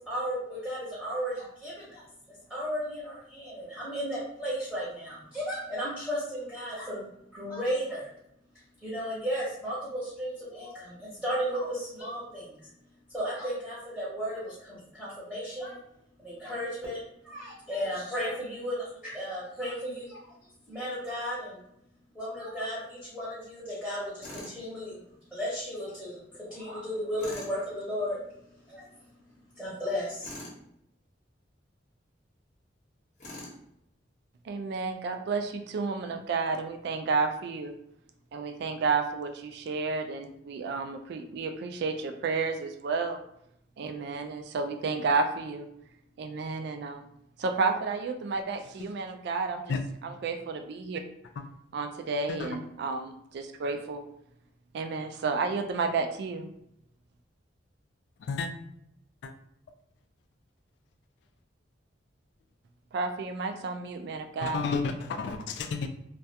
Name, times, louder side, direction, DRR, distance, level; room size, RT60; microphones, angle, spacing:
voice 1, 0.1-2.0 2.5-8.1 8.8-12.7 13.1-15.8 16.2-20.3 20.7-21.6 22.1-25.0 25.3-28.2 28.7-28.9 29.6-30.3, equal, 5° left, 0.8 m, -34 dB
Tools, 24.2-24.6 27.2-27.6 30.2-30.6 33.2-33.6, left 1 dB, 40° left, 0.8 m, -42 dB
voice 2, 34.4-37.7 38.3-43.2 43.8-45.7 46.2-47.1 47.4-49.7 50.0-51.0 51.7-54.0 54.7-56.5 62.9-64.6, right 4 dB, 65° right, 0.3 m, -31 dB
voice 3, 64.4-65.9, left 4 dB, 65° left, 0.3 m, -31 dB
2.3 x 2.1 x 2.7 m
head